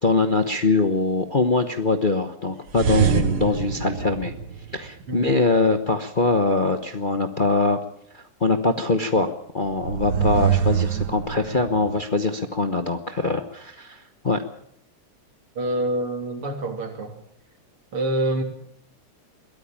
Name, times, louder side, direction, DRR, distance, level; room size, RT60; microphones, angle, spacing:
voice 1, 0.0-4.3 4.7-7.8 8.1-14.4, left 3 dB, 35° left, 6 dB, 0.8 m, -23 dB
sound 1, 2.7-5.1 9.7-12.0, right 8 dB, 55° right, 1.5 m, -24 dB
voice 2, 15.6-17.2 17.9-18.4, right 1 dB, 80° right, 4 dB, 3.9 m, -26 dB
22.0 x 14.0 x 8.9 m, 0.74 s
omnidirectional pair, 2.3 m